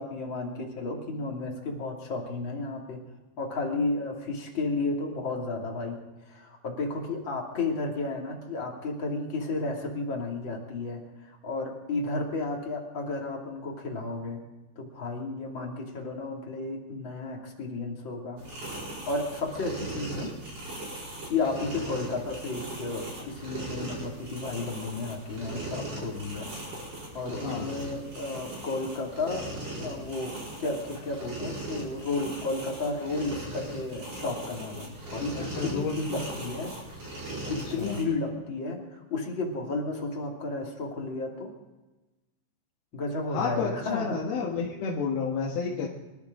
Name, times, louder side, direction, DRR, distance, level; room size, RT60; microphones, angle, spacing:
voice 1, 0.0-3.0 3.4-6.0 6.3-14.4 14.8-18.4 19.1-20.3 21.3-26.5 27.1-29.5 29.8-36.8 37.5-41.5 42.9-44.2, left 3 dB, 35° left, 0 dB, 2.4 m, -33 dB
sound 1, 18.4-38.0, right 1 dB, 30° right, 5.4 m, -39 dB
voice 2, 35.3-35.9 37.4-38.0 43.3-45.9, left 5 dB, 60° left, -4 dB, 3.2 m, -31 dB
25.0 x 13.5 x 3.8 m, 1.1 s
omnidirectional pair, 5.4 m